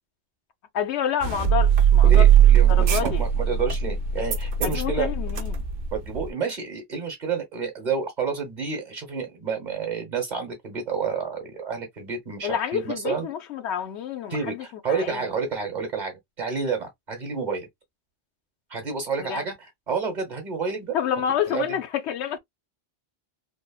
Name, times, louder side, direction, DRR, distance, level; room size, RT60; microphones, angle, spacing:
voice 1, 0.7-2.3 2.7-3.3 4.6-5.6 12.4-15.3 19.3-19.5 20.9-22.4, left 9 dB, 80° left, 0.9 m, -28 dB
sound 1, 1.2-6.3, right 9 dB, 60° right, 0.8 m, -19 dB
voice 2, 2.0-5.1 5.9-13.3 14.3-17.7 18.7-20.9 21.5-21.8, right 5 dB, 45° right, 1.1 m, -30 dB
3.4 x 2.1 x 2.2 m
omnidirectional pair, 1.1 m